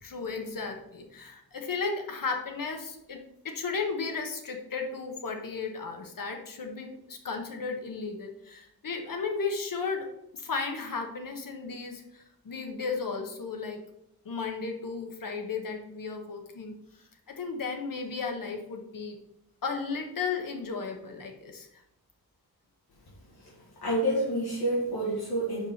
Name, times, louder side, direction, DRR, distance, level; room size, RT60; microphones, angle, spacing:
voice 1, 0.0-3.2 3.4-10.1 10.3-13.8 14.2-16.7 17.4-19.2 19.6-21.7, left 4 dB, 60° left, 3 dB, 1.3 m, -34 dB
voice 2, 23.8-25.7, right 1 dB, 75° left, -5 dB, 1.8 m, -28 dB
5.2 x 5.0 x 5.6 m, 0.82 s
wide cardioid pair, 165°, 38 cm